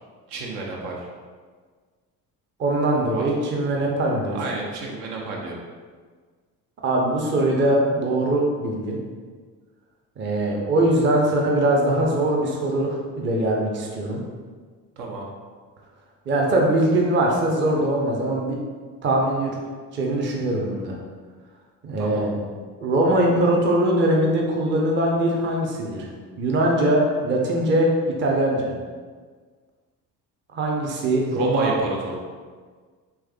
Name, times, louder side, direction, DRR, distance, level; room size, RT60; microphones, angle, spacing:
voice 1, 0.3-1.1 3.1-3.3 4.2-5.6 15.0-15.3 22.0-22.3 31.2-32.2, right 3 dB, 65° right, -1 dB, 0.7 m, -31 dB
voice 2, 2.6-4.4 6.8-9.0 10.2-14.2 16.3-18.6 19.0-19.5 19.9-21.0 21.8-22.4 22.8-26.0 26.4-27.9 28.2-28.7 30.5-31.7, right 1 dB, 25° right, -1 dB, 0.5 m, -21 dB
3.4 x 3.0 x 2.2 m, 1.5 s
figure-of-eight pair, 50°, 48 cm